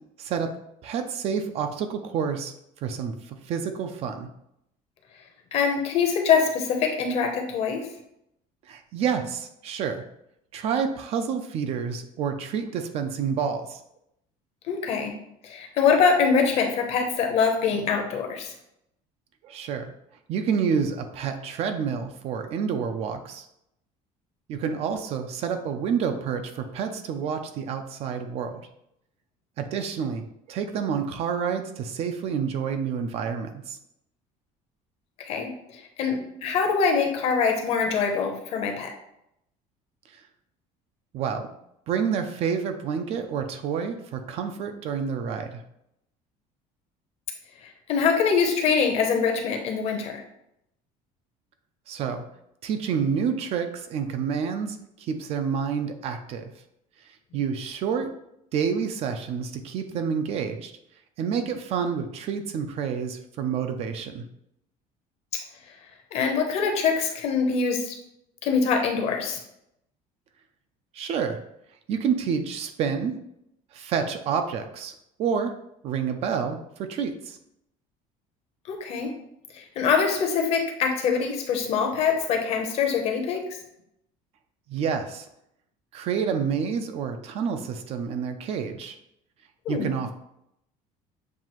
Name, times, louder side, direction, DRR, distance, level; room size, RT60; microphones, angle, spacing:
voice 1, 0.2-0.5 0.8-2.5 2.8-4.3 8.7-10.0 10.5-13.8 19.4-19.9 20.3-23.5 24.5-28.6 29.6-33.8 41.1-41.5 41.9-45.6 51.9-52.2 52.6-56.4 57.3-58.1 58.5-60.7 61.2-64.2 70.9-71.4 71.9-73.1 73.7-74.9 75.2-75.5 75.8-77.4 84.7-85.3 85.9-89.0 89.7-90.1, right 6 dB, 45° right, 7 dB, 0.4 m, -28 dB
voice 2, 5.5-7.9 14.7-15.1 15.4-18.5 35.2-38.9 47.9-50.2 66.1-68.0 68.4-69.4 78.7-79.1 79.5-83.4 89.7-89.9, left 6 dB, 45° left, 3 dB, 0.8 m, -24 dB
7.3 x 2.4 x 3.0 m, 0.78 s
cardioid pair, 175°, 15 cm